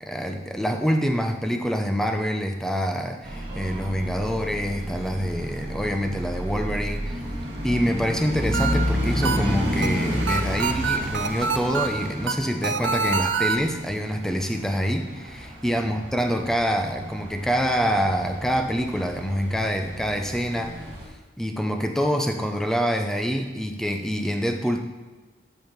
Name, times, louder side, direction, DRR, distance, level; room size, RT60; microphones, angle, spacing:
voice 1, 0.0-7.2 7.6-20.7 21.4-24.8, equal, 5° left, 4 dB, 0.4 m, -26 dB
sound 1, 3.2-21.1, equal, 60° right, 2.0 m, -31 dB
sound 2, 8.2-13.6, right 5 dB, 75° right, 0.5 m, -27 dB
10.0 x 5.2 x 3.1 m, 1.3 s
head